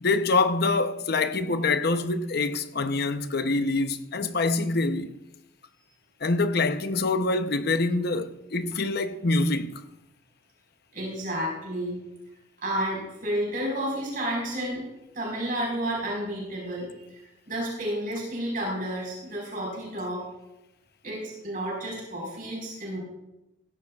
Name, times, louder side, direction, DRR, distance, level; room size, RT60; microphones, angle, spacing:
voice 1, 0.0-5.1 6.2-9.8, left 3 dB, 55° left, 0.7 m, -25 dB
voice 2, 10.9-12.0 12.6-14.8 15.1-17.2 17.5-20.2 21.0-23.0, right 1 dB, 45° right, 4.5 m, -31 dB
17.0 x 14.5 x 2.4 m
head